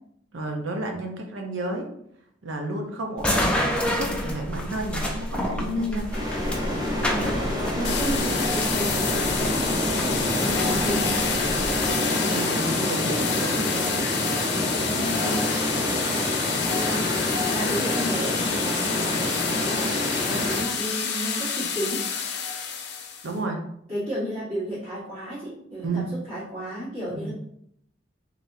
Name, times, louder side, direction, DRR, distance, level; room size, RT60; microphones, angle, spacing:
voice 1, 0.3-1.9 2.4-6.1 10.4-11.0 11.9-14.1 23.2-23.6 25.8-26.0 27.1-27.3, right 2 dB, 80° right, 3 dB, 0.8 m, -32 dB
sound 1, 3.2-11.9, equal, 5° left, 0.5 m, -30 dB
voice 2, 5.5-6.1 7.0-7.4 7.7-9.6 10.6-11.1 14.8-15.5 16.5-17.1 17.5-22.0 23.9-27.3, equal, 35° right, -13 dB, 1.6 m, -32 dB
sound 2, 6.1-20.6, left 1 dB, 20° right, 0.8 m, -27 dB
sound 3, 7.8-23.3, left 6 dB, 60° left, 0.6 m, -28 dB
4.0 x 3.5 x 2.7 m, 0.69 s
head